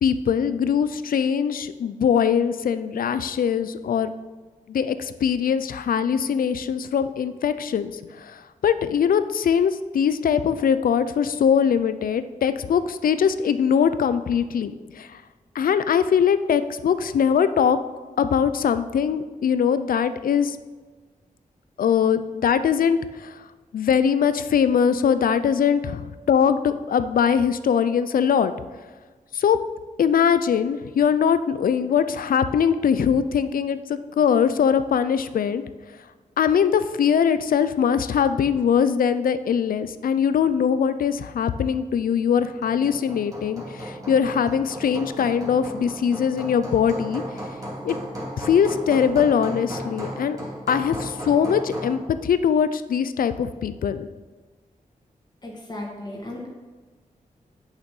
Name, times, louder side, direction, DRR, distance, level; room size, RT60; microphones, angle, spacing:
voice 1, 0.0-4.1 4.7-15.2 15.5-17.8 18.2-20.6 21.8-23.4 23.7-28.5 29.3-29.6 30.0-35.6 36.4-47.2 47.8-48.0 48.4-50.4 50.7-54.1, left 7 dB, 90° left, 12 dB, 0.5 m, -22 dB
Hammer, 42.4-52.0, equal, 25° right, 2.5 m, -35 dB
voice 2, 55.4-56.5, left 1 dB, 30° left, -3 dB, 2.0 m, -35 dB
8.8 x 6.6 x 5.4 m, 1.4 s
wide cardioid pair, 95°, 14 cm